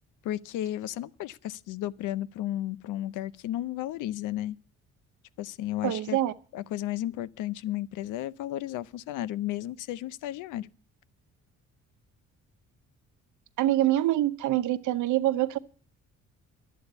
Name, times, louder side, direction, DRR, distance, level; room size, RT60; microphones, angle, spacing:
voice 1, 0.2-4.6 5.4-6.2 6.5-10.7, left 13 dB, 85° left, 0.6 m, -33 dB
voice 2, 5.8-6.3 13.6-15.6, right 14 dB, 80° right, 0.9 m, -25 dB
11.5 x 8.4 x 8.0 m
cardioid pair, 90°, 30 cm